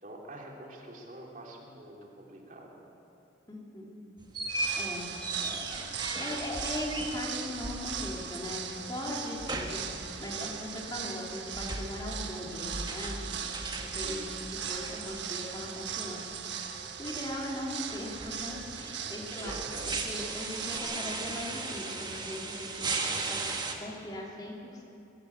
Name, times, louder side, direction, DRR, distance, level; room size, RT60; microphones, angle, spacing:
voice 1, 0.0-2.9 14.0-14.4 18.9-19.9, right 1 dB, 45° right, -1 dB, 3.0 m, -46 dB
voice 2, 3.5-4.0 4.4-5.1 5.4-13.5 13.8-14.2 14.5-23.5 23.8-24.8, left 1 dB, 20° left, -2 dB, 2.9 m, -40 dB
sound 1, 4.2-23.7, right 3 dB, 25° right, 1.6 m, -38 dB
sound 2, 4.5-20.8, right 8 dB, 65° right, 1.5 m, -39 dB
22.0 x 14.0 x 8.5 m, 2.8 s
head